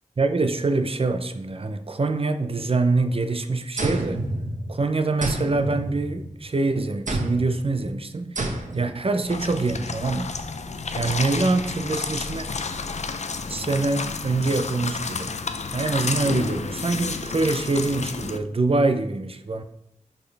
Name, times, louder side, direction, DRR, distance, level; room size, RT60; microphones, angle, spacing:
voice 1, 0.2-4.2 4.7-8.5 8.7-10.3 11.0-12.5 13.5-15.3 15.7-19.6, right 3 dB, 45° right, 8 dB, 0.6 m, -25 dB
sound 1, 3.8-4.8 5.2-6.5 7.1-7.6 8.4-9.0, right 2 dB, 70° right, 1.3 m, -29 dB
sound 2, 9.2-18.4, left 4 dB, 55° left, 0.5 m, -31 dB
11.5 x 4.3 x 3.4 m, 0.80 s
wide cardioid pair, 80°, 14 cm